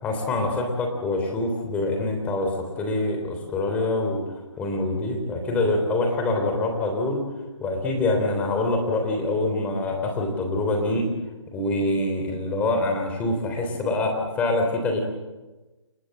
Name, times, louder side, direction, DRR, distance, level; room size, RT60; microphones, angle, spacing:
voice 1, 0.0-7.2 7.6-11.1 11.5-15.0, left 2 dB, 10° left, 3 dB, 3.4 m, -25 dB
29.5 x 17.0 x 7.7 m, 1.2 s
hypercardioid pair, 165°, 15 cm